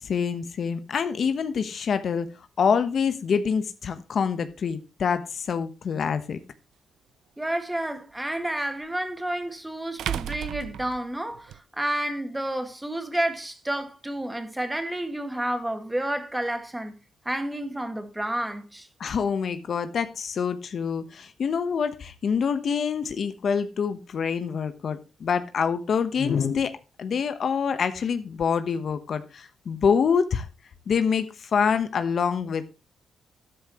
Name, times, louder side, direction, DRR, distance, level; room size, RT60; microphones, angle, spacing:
voice 1, 0.0-2.3 2.6-6.4 19.0-26.7 27.0-30.5 30.9-32.7, left 6 dB, 60° left, 1.1 m, -26 dB
sound 1, 6.1-6.2 8.8-8.9 10.0-11.6, right 11 dB, 85° right, 0.4 m, -33 dB
voice 2, 7.4-16.9 17.3-18.9, right 1 dB, 10° right, 2.0 m, -30 dB
12.5 x 10.5 x 3.1 m
cardioid pair, 95°, 0 cm